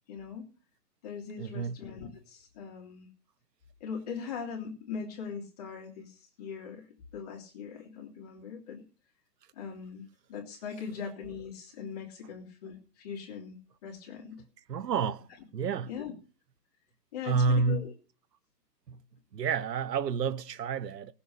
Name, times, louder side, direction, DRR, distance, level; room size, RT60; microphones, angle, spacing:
voice 1, 0.1-0.5 1.0-3.1 3.8-6.9 7.1-8.8 9.5-13.6 13.8-14.4 15.9-16.1 17.1-17.9, left 6 dB, 25° left, 2.4 m, -40 dB
voice 2, 1.4-1.8 14.7-15.3 15.5-15.9 17.2-17.9 18.9-19.0 19.3-21.1, right 5 dB, 75° right, 1.1 m, -29 dB
18.5 x 7.1 x 6.9 m
hypercardioid pair, 175°, 49 cm